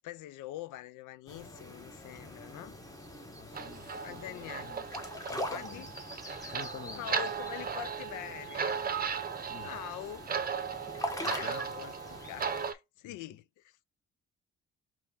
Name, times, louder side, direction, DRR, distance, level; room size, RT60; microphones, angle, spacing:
voice 1, 0.0-2.8 4.0-4.7 5.5-5.9 6.9-8.8 9.5-10.3 10.7-13.8, left 13 dB, 85° left, 0.5 m, -44 dB
sound 1, 1.3-12.7, left 1 dB, 10° left, 1.2 m, -43 dB
voice 2, 3.3-4.8 5.3-5.9 6.5-7.1 9.5-9.7 11.2-11.6 13.0-13.2, left 7 dB, 40° left, 0.6 m, -49 dB
sound 2, 3.5-12.7, right 6 dB, 30° right, 0.7 m, -37 dB
4.4 x 2.9 x 3.6 m
cardioid pair, 90°, 30 cm